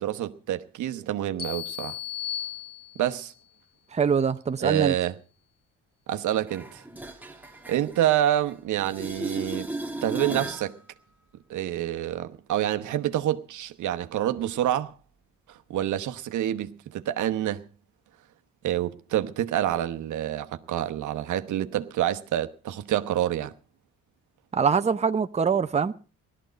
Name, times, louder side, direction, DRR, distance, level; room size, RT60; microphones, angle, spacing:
voice 1, 0.0-1.9 2.9-3.3 4.6-5.1 6.1-6.8 7.7-9.7 10.0-10.8 11.5-14.9 15.5-17.7 18.6-23.5, right 12 dB, 75° right, 1.0 m, -27 dB
sound 1, 1.4-3.3, left 10 dB, 30° left, 2.1 m, -35 dB
voice 2, 3.9-4.9 24.5-25.9, right 6 dB, 20° right, 0.7 m, -23 dB
sound 2, 6.5-8.5 8.8-10.7 16.5-16.6, right 2 dB, 5° right, 1.5 m, -35 dB
17.5 x 12.5 x 5.1 m
cardioid pair, 90°, 30 cm